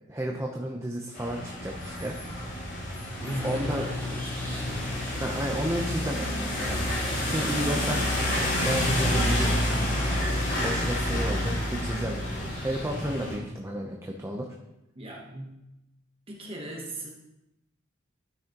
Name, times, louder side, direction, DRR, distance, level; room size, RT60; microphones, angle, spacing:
voice 1, 0.1-2.2 3.4-4.0 5.2-6.9 7.3-9.8 10.6-14.5, equal, 15° right, 0 dB, 0.7 m, -32 dB
sound 1, 1.1-13.3, equal, 50° left, 3.5 m, -29 dB
sound 2, 3.2-13.6, left 2 dB, 10° left, 1.3 m, -38 dB
voice 2, 3.2-4.9 7.0-7.5 14.9-15.6 16.3-17.1, right 1 dB, 30° right, -1 dB, 1.0 m, -39 dB
12.5 x 6.2 x 2.9 m, 0.92 s
head